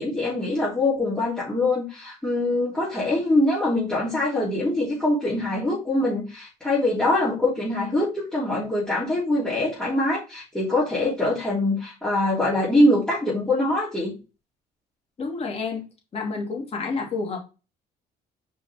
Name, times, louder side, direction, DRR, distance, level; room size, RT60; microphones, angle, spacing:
voice 1, 0.0-14.1, left 1 dB, 5° left, -9 dB, 3.1 m, -23 dB
voice 2, 15.2-15.9 16.1-17.4, left 4 dB, 35° left, 1 dB, 2.5 m, -29 dB
5.5 x 4.9 x 3.5 m, 0.30 s
cardioid pair, 110°, 17 cm